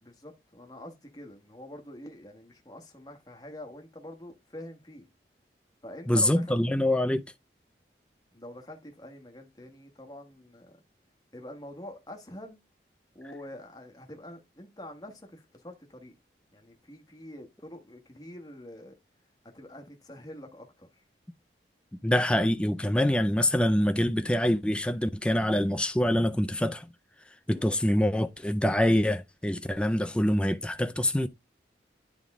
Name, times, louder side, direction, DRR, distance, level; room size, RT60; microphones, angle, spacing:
voice 1, 0.0-5.1 5.8-6.6 8.3-10.8 11.3-12.6 13.1-16.1 16.5-18.9 19.5-21.0 27.5-27.8, left 1 dB, 20° left, 1.2 m, -46 dB
voice 2, 6.1-7.2 22.0-26.9 27.5-31.3, left 1 dB, 5° left, 0.4 m, -25 dB
9.6 x 3.6 x 3.5 m
head